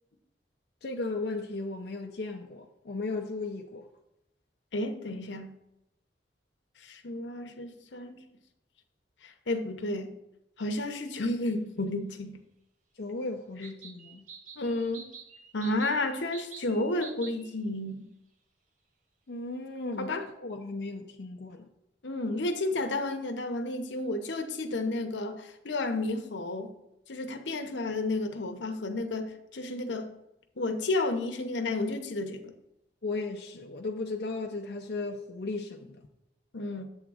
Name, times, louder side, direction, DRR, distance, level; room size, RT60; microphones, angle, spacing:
voice 1, 0.8-3.8 13.0-14.2 19.3-20.1 20.4-21.6 33.0-36.0, left 3 dB, 60° left, 0.5 m, -36 dB
voice 2, 4.7-5.5 6.8-8.2 9.2-10.1 10.6-12.4 14.6-15.1 15.5-18.1 20.0-20.3 22.0-26.7 27.1-30.1 30.6-32.5 36.5-36.8, left 2 dB, 85° left, 0.8 m, -32 dB
sound 1, 11.1-11.2 13.6-17.6, right 5 dB, 45° right, 0.8 m, -48 dB
7.9 x 3.6 x 6.3 m
head